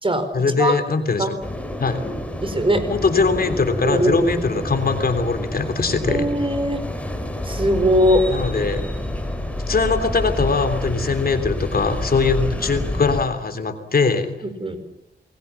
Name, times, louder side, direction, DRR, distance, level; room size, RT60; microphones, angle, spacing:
voice 1, 0.3-1.4 1.8-2.0 2.9-6.3 8.3-8.8 9.7-14.4, left 4 dB, 55° left, 8 dB, 3.4 m, -21 dB
sound 1, 1.4-13.2, left 1 dB, 5° left, 4.6 m, -28 dB
voice 2, 2.4-2.8 3.8-4.6 6.1-6.8 7.4-8.2 14.4-14.8, equal, 25° right, 9 dB, 4.6 m, -20 dB
29.0 x 21.5 x 7.3 m, 0.80 s
wide cardioid pair, 105°, 19 cm